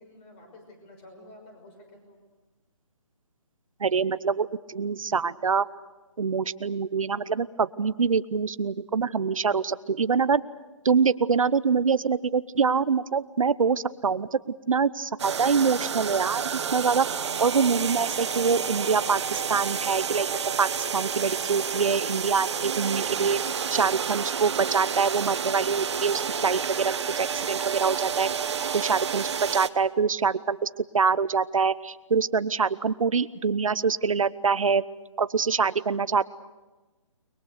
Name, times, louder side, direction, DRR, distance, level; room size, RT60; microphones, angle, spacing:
voice 1, 0.0-2.2 3.8-4.0 13.6-13.9, left 1 dB, 25° left, 4 dB, 5.9 m, -50 dB
voice 2, 3.8-5.6 6.2-10.4 10.8-14.4 14.7-17.1 17.4-20.3 20.6-23.4 23.7-28.3 28.7-34.8 35.2-36.3, right 5 dB, 80° right, 15 dB, 0.9 m, -25 dB
sound 1, 15.2-29.7, right 7 dB, 55° right, 1.2 m, -30 dB
30.0 x 22.0 x 6.6 m, 1.2 s
hypercardioid pair, 155°, 17 cm